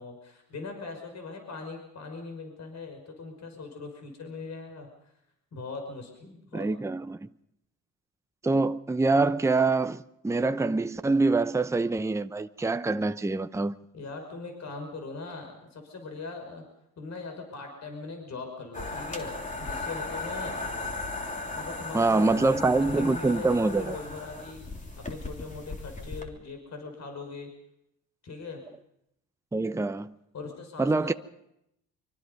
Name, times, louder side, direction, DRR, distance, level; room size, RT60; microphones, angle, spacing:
voice 1, 0.0-4.9 5.5-6.7 13.9-16.6 17.0-19.3 19.6-20.6 21.5-24.6 25.1-27.5 28.2-28.6 30.3-31.1, left 3 dB, 50° left, 5.8 m, -40 dB
voice 2, 6.5-7.3 8.4-13.8 21.9-24.0 29.5-30.1 30.8-31.1, right 3 dB, 10° right, 0.8 m, -25 dB
sound 1, 18.7-26.2, left 3 dB, 20° left, 3.4 m, -36 dB
25.0 x 24.5 x 5.4 m
supercardioid pair, 85°, 35 cm